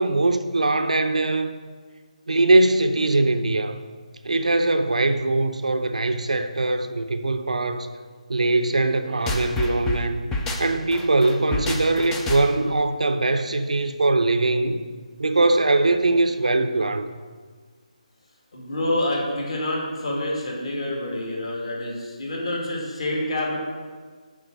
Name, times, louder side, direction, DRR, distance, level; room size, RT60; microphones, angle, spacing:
voice 1, 0.0-1.5 2.3-3.8 4.2-7.9 8.3-10.2 10.6-14.8 15.2-17.1, right 2 dB, 65° right, 0.5 m, -21 dB
sound 1, 9.3-12.7, left 2 dB, 10° left, 0.4 m, -29 dB
voice 2, 18.5-23.6, left 1 dB, 45° left, 2.1 m, -27 dB
8.8 x 3.9 x 6.4 m
figure-of-eight pair, 150°, 4 cm